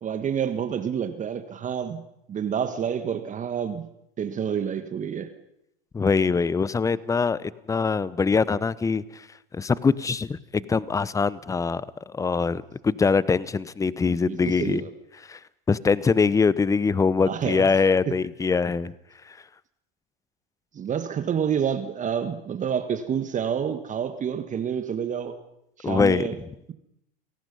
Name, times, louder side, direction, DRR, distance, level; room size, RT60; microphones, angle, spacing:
voice 1, 0.0-2.0 2.3-3.9 4.2-5.3 14.0-14.9 17.2-17.7 18.1-18.2 20.7-25.4 25.8-26.4, right 8 dB, 25° right, 9 dB, 1.6 m, -28 dB
voice 2, 5.9-9.0 9.5-14.8 15.3-15.4 15.7-18.9 25.8-26.3, left 5 dB, 10° left, 20 dB, 0.7 m, -23 dB
30.0 x 18.0 x 5.5 m, 0.81 s
hypercardioid pair, 95°, 29 cm